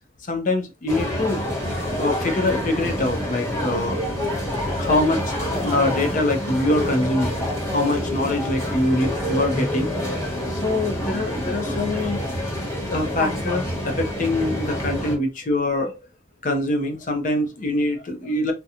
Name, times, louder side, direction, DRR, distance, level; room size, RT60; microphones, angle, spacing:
voice 1, 0.3-4.0 4.8-5.3 5.6-9.9 10.5-12.2 12.9-16.0 16.4-18.5, left 2 dB, 45° left, 0.6 m, -24 dB
sound 1, 0.9-15.2, equal, 15° left, 1.1 m, -27 dB
2.8 x 2.2 x 2.4 m
head